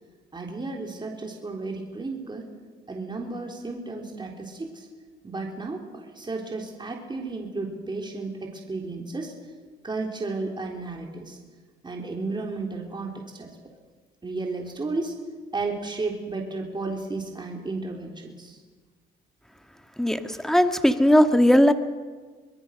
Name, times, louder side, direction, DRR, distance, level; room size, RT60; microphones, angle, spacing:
voice 1, 0.3-2.5 2.9-4.9 5.2-9.3 9.8-11.4 11.8-13.6 14.2-15.2 15.5-18.6, right 3 dB, 25° right, 1 dB, 3.6 m, -33 dB
voice 2, 20.0-21.7, equal, ahead, 8 dB, 1.7 m, -18 dB
24.5 x 21.5 x 6.5 m, 1.5 s
cardioid pair, 90°, 20 cm